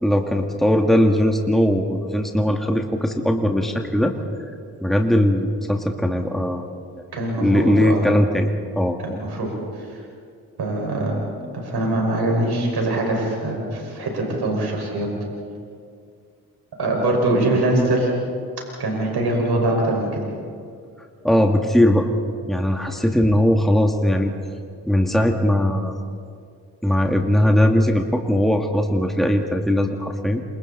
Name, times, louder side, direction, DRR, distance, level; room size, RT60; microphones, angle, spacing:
voice 1, 0.0-4.1 4.8-6.7 7.4-8.5 8.8-9.2 21.2-22.1 22.5-24.3 24.9-25.9 26.8-30.4, equal, ahead, 3 dB, 2.3 m, -19 dB
voice 2, 7.1-8.0 9.0-9.9 10.6-11.2 11.5-15.1 16.8-18.1 18.8-20.2, right 1 dB, 70° right, -1 dB, 5.5 m, -23 dB
28.0 x 26.0 x 4.2 m, 2.3 s
supercardioid pair, 40°, 40 cm